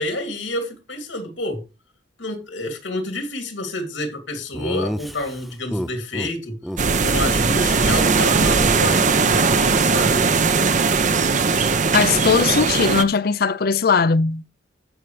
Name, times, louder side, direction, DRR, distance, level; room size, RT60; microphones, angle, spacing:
voice 1, 0.0-1.6 2.2-6.6 7.0-10.2, left 1 dB, 85° left, 2.9 m, -28 dB
Laughter, 4.5-6.3 6.6-6.8 7.1-7.3 7.5-9.1, equal, ahead, 0.4 m, -31 dB
sound 1, 6.8-13.0, right 4 dB, 40° right, 0.7 m, -19 dB
voice 2, 11.6-14.4, left 5 dB, 55° left, 0.5 m, -19 dB
16.0 x 5.7 x 3.3 m
head